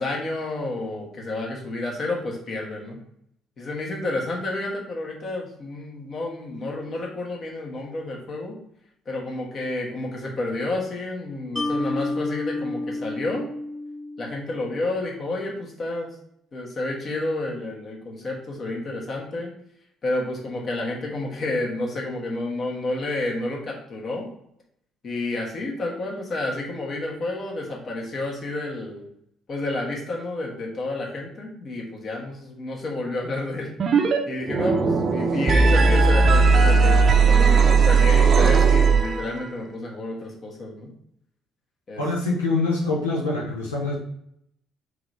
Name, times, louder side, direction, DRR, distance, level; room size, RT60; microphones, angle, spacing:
voice 1, 0.0-3.0 3.6-8.5 9.0-13.5 14.2-16.1 16.5-19.5 20.0-24.3 25.0-29.1 29.5-33.7 34.3-40.9 41.9-42.0, left 2 dB, 45° left, -2 dB, 1.3 m, -30 dB
Mallet percussion, 11.6-14.8, left 2 dB, 10° left, 1.0 m, -30 dB
sound 1, 33.8-34.2 34.4-39.4, right 4 dB, 45° right, 0.6 m, -17 dB
voice 2, 42.0-43.9, left 3 dB, 85° left, -4 dB, 0.5 m, -24 dB
3.7 x 3.2 x 3.7 m, 0.73 s
figure-of-eight pair, 50°, 0 cm